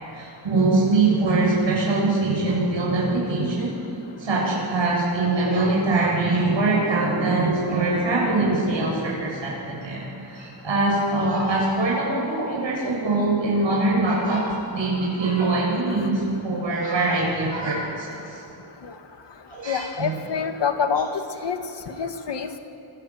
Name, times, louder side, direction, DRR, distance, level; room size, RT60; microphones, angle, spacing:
voice 1, 0.1-3.7 4.2-18.4 19.5-20.1, right 2 dB, 85° right, -4 dB, 7.7 m, -23 dB
voice 2, 15.8-16.4 18.8-18.9 19.7-21.1 21.4-21.6 21.9-22.6, left 6 dB, 70° left, 6 dB, 1.9 m, -27 dB
27.0 x 22.0 x 7.7 m, 2.8 s
wide cardioid pair, 165°, 44 cm